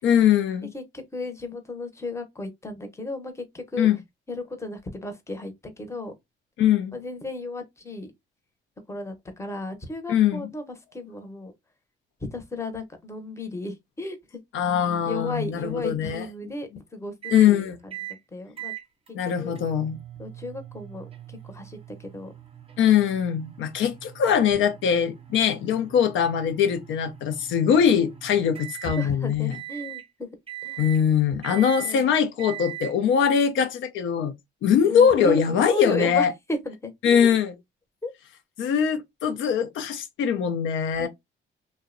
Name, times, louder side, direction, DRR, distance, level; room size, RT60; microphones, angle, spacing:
voice 1, 0.0-0.7 3.8-4.0 6.6-7.0 10.1-10.4 14.5-16.3 17.3-17.8 19.1-20.0 22.8-29.5 30.8-34.3 34.6-36.3 37.0-37.5 38.6-41.1, left 8 dB, 75° left, 0.5 m, -22 dB
voice 2, 0.7-3.9 4.3-6.1 6.9-8.1 8.9-11.5 12.3-14.4 15.0-17.7 18.3-18.7 19.2-19.6 20.2-22.3 29.0-30.3 30.6-30.8 31.5-32.1 34.9-37.3 38.0-38.1 41.0-41.1, left 1 dB, 15° left, 0.7 m, -34 dB
sound 1, 17.2-17.5 17.9-18.2 18.6-29.1 29.5-30.1 30.5-31.0 31.4-32.0 32.4-32.9, right 13 dB, 30° right, 0.6 m, -41 dB
2.5 x 2.0 x 2.4 m
cardioid pair, 90°, 20 cm